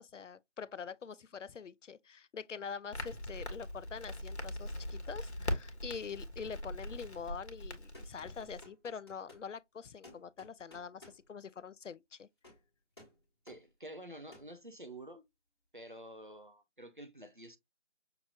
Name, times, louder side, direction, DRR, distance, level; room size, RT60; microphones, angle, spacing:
voice 1, 0.0-12.3, left 6 dB, 80° left, 0.5 m, -45 dB
Crackle, 2.9-8.6, left 1 dB, 60° left, 1.3 m, -41 dB
sound 1, 6.9-7.4 7.9-9.5 10.0-11.3 12.4-12.6 13.0-13.2 13.5-13.6 14.3-14.5, left 2 dB, 20° left, 1.6 m, -57 dB
voice 2, 13.5-15.3 15.7-17.6, right 1 dB, 45° right, 0.6 m, -49 dB
5.9 x 2.9 x 2.4 m
figure-of-eight pair, 175°, 36 cm